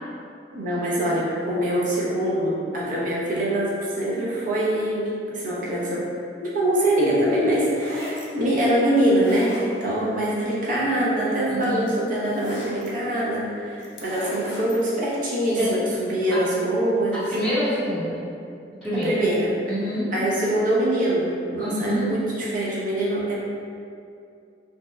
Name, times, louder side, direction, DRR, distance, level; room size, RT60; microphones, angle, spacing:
voice 1, 0.5-3.7 4.0-6.0 6.4-17.3 19.0-19.5 20.1-23.4, right 1 dB, 50° right, -6 dB, 0.5 m, -24 dB
sound 1, 7.5-8.3 9.0-10.1 11.2-11.3 11.6-12.9 13.8-14.8, left 1 dB, 80° left, 0.5 m, -37 dB
voice 2, 11.5-11.9 15.5-15.8 16.3-16.4 17.3-18.2 18.8-19.2 19.7-20.1 21.6-22.1, equal, 5° right, -19 dB, 0.7 m, -26 dB
2.7 x 2.0 x 2.2 m, 2.5 s
head